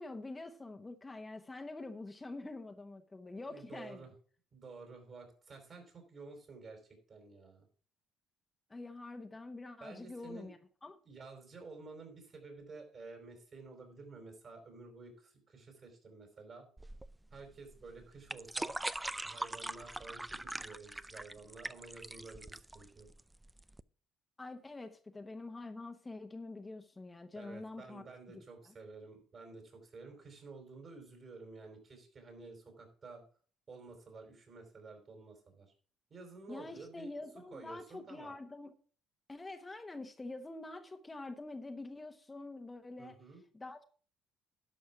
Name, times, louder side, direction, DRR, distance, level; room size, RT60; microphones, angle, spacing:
voice 1, 0.0-4.1 8.7-11.0 24.4-28.7 36.5-38.7 39.3-43.2 43.5-43.8, left 2 dB, 20° left, 1.1 m, -46 dB
voice 2, 3.5-4.1 4.5-6.8 7.1-7.7 9.8-10.5 11.0-16.6 17.3-18.7 19.2-23.1 27.3-33.2 33.7-35.7 36.1-37.1 37.5-38.3 43.0-43.4, right 3 dB, 45° right, 4.6 m, -51 dB
sound 1, 16.8-23.8, right 1 dB, 10° right, 0.4 m, -42 dB
11.5 x 5.4 x 5.9 m
supercardioid pair, 70°, 0 cm